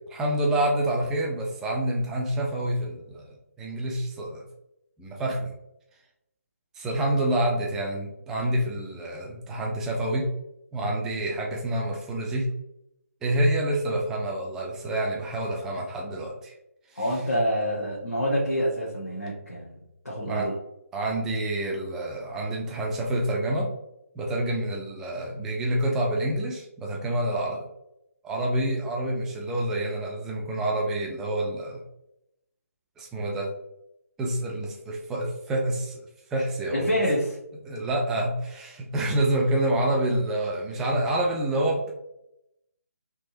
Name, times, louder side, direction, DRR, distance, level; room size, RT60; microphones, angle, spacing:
voice 1, 0.0-4.4 5.0-5.5 6.7-10.3 10.7-12.5 13.2-16.5 16.9-17.0 20.2-20.5 20.9-23.7 24.2-27.6 28.2-31.8 33.0-33.5 34.2-36.0 36.3-36.9 37.7-41.9, right 1 dB, 5° right, -1 dB, 0.3 m, -27 dB
voice 2, 16.9-20.5 36.7-37.4, equal, 85° left, -7 dB, 1.2 m, -27 dB
3.5 x 2.9 x 2.6 m, 0.84 s
figure-of-eight pair, 150°, 8 cm